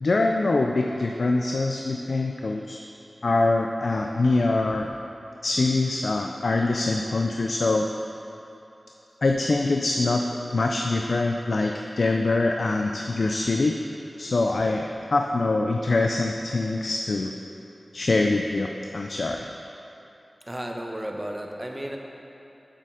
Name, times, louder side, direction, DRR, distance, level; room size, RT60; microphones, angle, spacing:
voice 1, 0.0-2.8 3.2-4.9 5.4-7.9 9.2-10.2 10.5-13.7 14.2-17.3 17.9-19.5, left 2 dB, 70° left, 2 dB, 0.4 m, -24 dB
voice 2, 20.4-22.0, right 1 dB, 20° right, 2 dB, 1.0 m, -33 dB
7.5 x 6.6 x 5.0 m, 3.0 s
cardioid pair, 45°, 0 cm